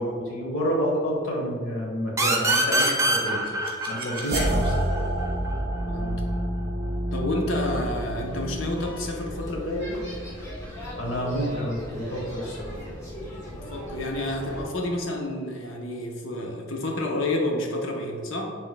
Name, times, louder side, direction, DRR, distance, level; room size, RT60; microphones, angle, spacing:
voice 1, 0.0-3.4 3.9-4.8 10.9-12.8, equal, 90° left, -2 dB, 1.2 m, -29 dB
sound 1, 2.2-5.6, right 2 dB, 15° right, 0.4 m, -25 dB
sound 2, 2.8-11.8, right 1 dB, 50° right, 1.0 m, -30 dB
voice 2, 5.9-6.2 7.1-10.0 13.5-18.5, left 1 dB, 75° left, 1 dB, 0.7 m, -29 dB
sound 3, 7.6-14.7, equal, 15° left, 1.0 m, -39 dB
5.8 x 3.8 x 2.2 m, 2.1 s
head